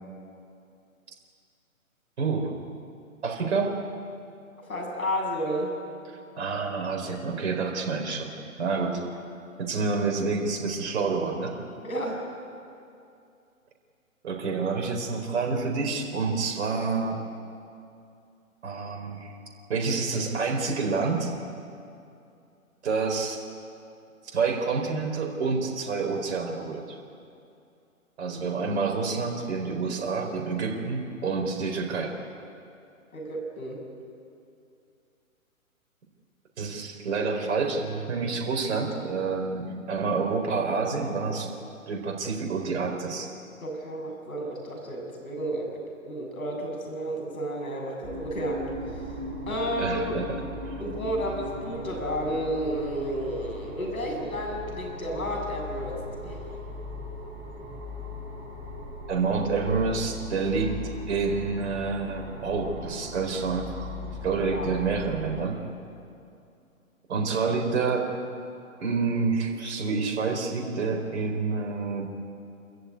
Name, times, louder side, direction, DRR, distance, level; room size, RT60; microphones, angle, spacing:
voice 1, 2.2-2.5 3.2-3.8 6.4-8.3 8.6-9.0 9.6-11.6 14.2-17.2 18.6-19.4 19.7-21.3 22.8-23.4 24.2-27.0 28.2-32.2 36.6-41.5 41.9-43.3 49.8-50.4 59.1-60.8 61.1-64.0 64.2-65.6 67.1-68.1 68.8-72.1, right 4 dB, 50° right, 2 dB, 4.4 m, -28 dB
voice 2, 4.6-5.8 11.8-12.2 33.1-33.8 43.6-49.1 49.5-50.2 50.8-56.5 64.4-64.7, right 1 dB, 75° left, 1 dB, 7.9 m, -32 dB
sound 1, 48.0-65.4, left 2 dB, 15° right, 6.1 m, -38 dB
28.5 x 14.5 x 9.6 m, 2.6 s
figure-of-eight pair, 135°, 42 cm